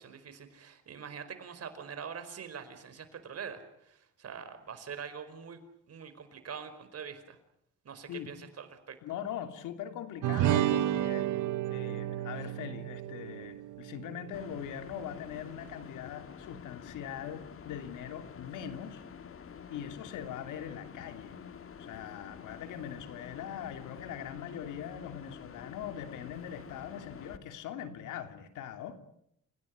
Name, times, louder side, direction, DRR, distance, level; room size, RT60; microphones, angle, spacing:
voice 1, 0.0-5.6 5.9-7.4 7.8-9.0, right 7 dB, 55° right, 10 dB, 4.9 m, -44 dB
voice 2, 9.0-11.3 11.7-19.0 19.7-21.4 21.8-29.0, left 9 dB, 90° left, 8 dB, 3.0 m, -41 dB
sound 1, 10.2-14.9, right 13 dB, 85° right, 1.2 m, -32 dB
sound 2, 14.3-27.4, left 7 dB, 45° left, 2.0 m, -48 dB
29.5 x 17.5 x 9.5 m, 0.77 s
cardioid pair, 90°, 30 cm